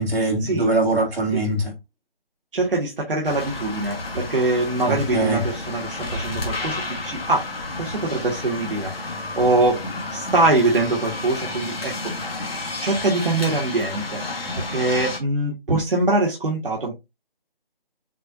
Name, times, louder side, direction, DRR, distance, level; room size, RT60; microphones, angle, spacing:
voice 1, 0.0-1.7 4.8-5.4, right 2 dB, 90° right, 2.4 m, -22 dB
voice 2, 2.5-9.8 10.1-12.1 12.8-16.9, right 2 dB, 65° right, 1.5 m, -23 dB
sound 1, 3.2-15.2, left 2 dB, 80° left, 1.5 m, -31 dB
6.6 x 2.6 x 2.6 m
hypercardioid pair, 180°, 29 cm